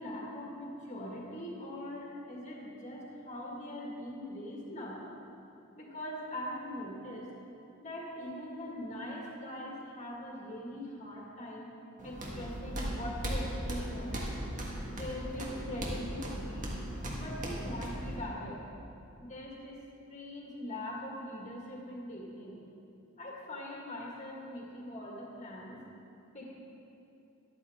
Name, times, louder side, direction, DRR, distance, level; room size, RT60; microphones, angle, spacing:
voice 1, 0.0-5.0 5.8-7.3 7.8-11.7 12.0-14.2 14.9-16.7 17.1-18.6 19.2-19.8 20.1-22.6 23.2-25.8 26.3-26.5, left 1 dB, 35° left, -3 dB, 1.8 m, -42 dB
sound 1, 12.0-18.2, equal, 35° right, 1.7 m, -37 dB
13.0 x 11.5 x 3.6 m, 2.8 s
head